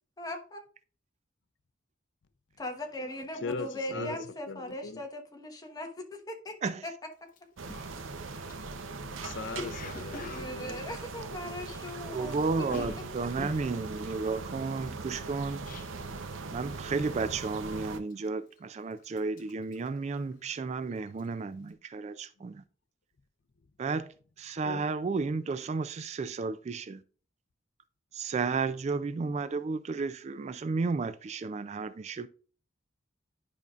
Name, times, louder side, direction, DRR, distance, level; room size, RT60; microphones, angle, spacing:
voice 1, 0.2-0.7 2.6-6.9 7.2-7.3 10.3-12.7, left 1 dB, 20° left, 1.2 m, -39 dB
Cough, 7.3-7.4 7.7-12.2 12.4-16.2 16.5-16.9 17.2-17.6 18.1-18.7 19.0-20.7 21.0-21.3, left 3 dB, 45° left, 0.9 m, -45 dB
sound 1, 7.6-18.0, right 3 dB, 90° right, 0.7 m, -40 dB
voice 2, 9.2-10.8 24.6-24.8, left 4 dB, 65° left, 0.5 m, -38 dB
voice 3, 12.1-15.6 16.5-22.6 23.8-27.0 28.1-32.3, right 4 dB, 35° right, 0.3 m, -33 dB
10.5 x 5.3 x 2.4 m
head